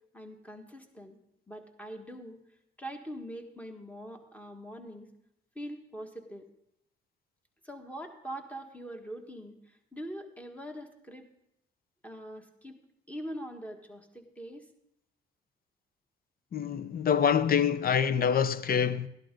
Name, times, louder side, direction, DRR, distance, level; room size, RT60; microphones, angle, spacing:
voice 1, 0.1-1.2 1.5-2.4 2.8-5.1 5.5-6.5 7.6-11.3 12.0-12.7 13.1-14.6, equal, 5° left, 1.6 m, -43 dB
voice 2, 16.5-19.1, left 7 dB, 50° left, 0.7 m, -26 dB
13.0 x 11.0 x 3.9 m
cardioid pair, 90°, 20 cm